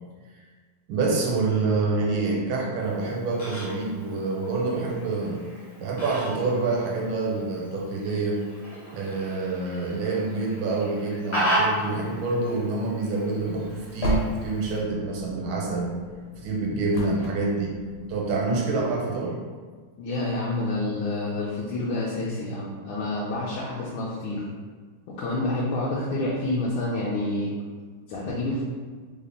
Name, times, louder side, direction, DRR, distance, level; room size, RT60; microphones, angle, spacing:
voice 1, 0.9-5.4 5.8-8.4 8.9-15.9 16.4-17.8 18.1-19.4, right 3 dB, 80° right, -2 dB, 1.5 m, -27 dB
Fowl, 2.8-14.8, right 1 dB, 25° left, 0.6 m, -34 dB
sound 1, 13.3-18.4, right 1 dB, 65° left, 1.5 m, -35 dB
voice 2, 20.0-24.5 25.1-27.5 28.1-28.6, left 2 dB, 80° left, -5 dB, 1.4 m, -28 dB
3.5 x 2.0 x 3.8 m, 1.5 s
omnidirectional pair, 2.3 m